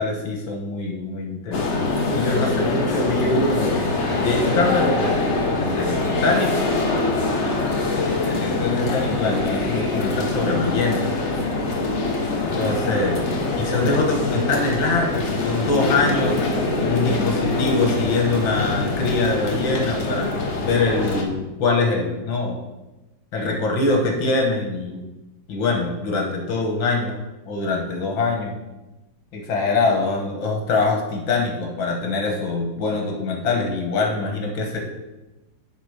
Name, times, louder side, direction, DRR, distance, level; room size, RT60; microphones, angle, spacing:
voice 1, 0.0-3.9 4.2-6.7 7.7-11.0 12.6-13.2 13.6-16.4 16.8-20.3 20.6-22.6 23.3-25.0 25.5-27.2 27.5-28.6 29.3-34.8, left 3 dB, 80° left, 1 dB, 2.1 m, -24 dB
sound 1, 1.5-21.2, left 2 dB, 45° left, 1.2 m, -24 dB
10.5 x 3.9 x 5.1 m, 1.0 s
omnidirectional pair, 2.1 m